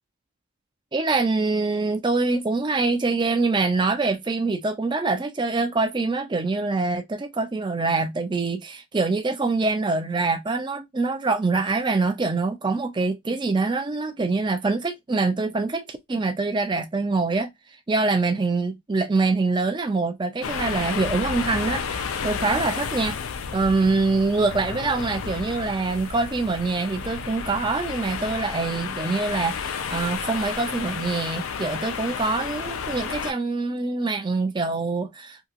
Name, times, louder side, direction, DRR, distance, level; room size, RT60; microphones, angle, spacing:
voice 1, 0.9-17.5 17.9-23.2 23.5-35.5, right 3 dB, 20° right, 0.4 m, -24 dB
sound 1, 20.4-33.3, left 6 dB, 65° left, 0.4 m, -31 dB
2.8 x 2.7 x 2.4 m
head